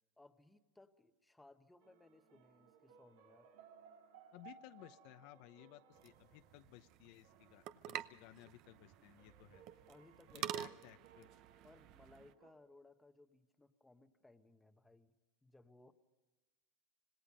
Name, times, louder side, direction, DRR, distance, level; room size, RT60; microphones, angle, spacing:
voice 1, 0.2-3.5 9.9-10.6 11.6-15.1 15.4-15.9, left 2 dB, 5° left, 8 dB, 1.1 m, -64 dB
sound 1, 1.8-12.5, right 8 dB, 90° right, 3.5 m, -64 dB
voice 2, 4.3-9.6 10.4-11.3, left 15 dB, 60° left, 10 dB, 0.8 m, -59 dB
sound 2, 5.9-12.3, right 12 dB, 50° right, 0.8 m, -49 dB
26.0 x 19.0 x 5.4 m, 1.1 s
supercardioid pair, 140°, 0 cm